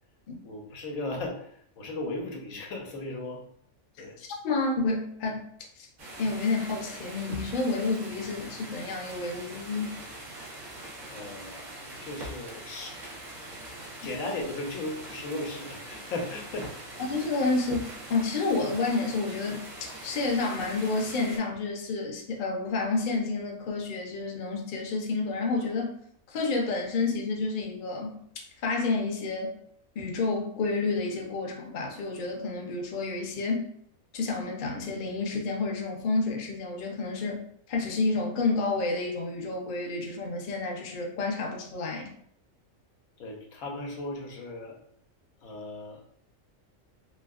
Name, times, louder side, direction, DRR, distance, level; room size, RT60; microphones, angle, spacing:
voice 1, 0.4-1.5 1.8-3.4 4.0-4.2 11.1-13.0 14.0-16.8 43.2-44.8 45.4-46.0, left 2 dB, 85° left, 1.1 m, -36 dB
voice 2, 4.2-5.5 5.8-5.9 6.2-10.0 17.1-26.0 26.3-29.6 30.0-33.7 34.1-42.1, left 3 dB, 55° left, 0.6 m, -30 dB
sound 1, 6.0-21.4, right 1 dB, 70° right, 1.3 m, -42 dB
3.4 x 2.6 x 2.4 m
omnidirectional pair, 1.4 m